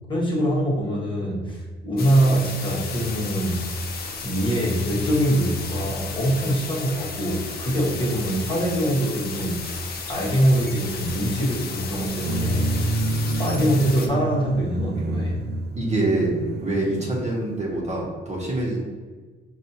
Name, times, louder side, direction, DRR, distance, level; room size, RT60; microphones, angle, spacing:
voice 1, 0.1-3.6 4.2-9.6 10.1-12.7 13.4-15.4, right 1 dB, 25° left, -5 dB, 1.3 m, -23 dB
sound 1, 2.0-14.1, left 5 dB, 50° left, 0.6 m, -34 dB
sound 2, 12.3-17.6, right 2 dB, 55° right, 0.4 m, -29 dB
voice 2, 15.7-16.3 16.6-18.8, right 2 dB, 35° right, -3 dB, 1.1 m, -25 dB
5.2 x 2.5 x 2.7 m, 1.4 s
cardioid pair, 90°, 20 cm